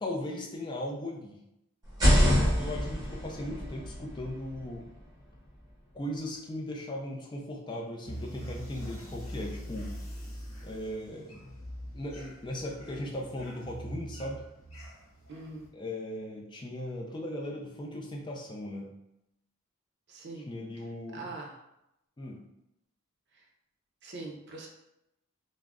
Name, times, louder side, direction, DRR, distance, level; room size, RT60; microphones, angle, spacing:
voice 1, 0.0-1.4 2.3-4.9 5.9-10.0 10.6-11.6 11.9-14.4 15.7-18.9 20.5-21.3 22.2-22.4, left 1 dB, 20° left, -1 dB, 0.4 m, -38 dB
sound 1, 1.8-5.7, equal, 20° right, 1.2 m, -27 dB
sound 2, 8.0-15.7, equal, 75° left, 0.8 m, -43 dB
voice 2, 15.3-15.7 20.1-20.5 20.8-20.9 21.1-21.5 23.3-23.4 24.0-24.7, right 3 dB, 55° right, 0 dB, 0.6 m, -42 dB
2.4 x 2.0 x 3.4 m, 0.84 s
head